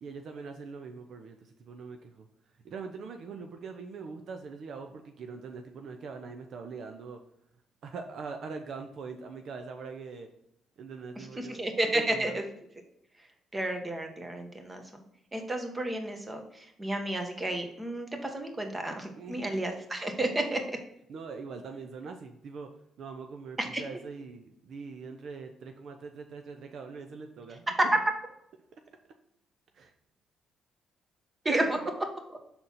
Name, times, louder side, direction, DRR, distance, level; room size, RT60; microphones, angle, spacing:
voice 1, 0.0-2.3 2.6-7.2 7.8-10.3 10.8-11.6 11.9-12.4 19.2-19.5 21.1-22.7 23.0-27.7 29.7-29.9 31.6-31.8, right 5 dB, 65° right, 5 dB, 0.8 m, -42 dB
voice 2, 11.2-12.4 13.5-14.8 15.3-20.8 23.6-23.8 31.4-31.8 32.3-32.4, right 1 dB, 20° right, 4 dB, 1.5 m, -32 dB
6.1 x 3.9 x 5.7 m, 0.75 s
cardioid pair, 90°, 0 cm